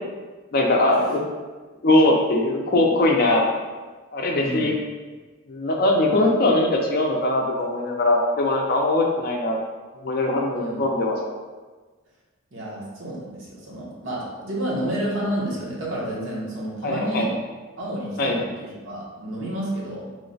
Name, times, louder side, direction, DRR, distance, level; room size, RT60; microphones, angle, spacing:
voice 1, 0.5-1.2 1.8-3.4 4.1-4.8 5.5-9.6 10.0-11.2 16.8-17.3 18.2-18.4, left 2 dB, 45° left, 0 dB, 0.4 m, -21 dB
voice 2, 4.3-4.7 10.6-10.8 12.5-17.4 17.8-20.1, right 1 dB, 65° right, -5 dB, 0.9 m, -30 dB
3.1 x 2.1 x 3.9 m, 1.3 s
head